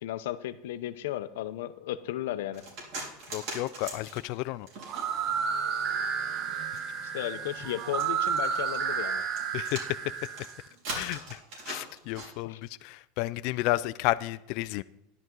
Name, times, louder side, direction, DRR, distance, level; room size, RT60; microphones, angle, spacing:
voice 1, 0.0-2.6 7.1-9.2 12.4-12.6, left 13 dB, 80° left, 12 dB, 0.7 m, -35 dB
sound 1, 2.5-5.4 5.9-12.3, right 2 dB, 60° right, 4.2 m, -41 dB
voice 2, 3.3-4.7 9.5-9.8 10.9-11.4 11.7-14.8, left 18 dB, 55° left, 14 dB, 0.3 m, -32 dB
sound 2, 4.8-10.6, right 7 dB, 35° right, 0.9 m, -31 dB
11.0 x 10.5 x 3.8 m, 0.86 s
supercardioid pair, 150°, 0 cm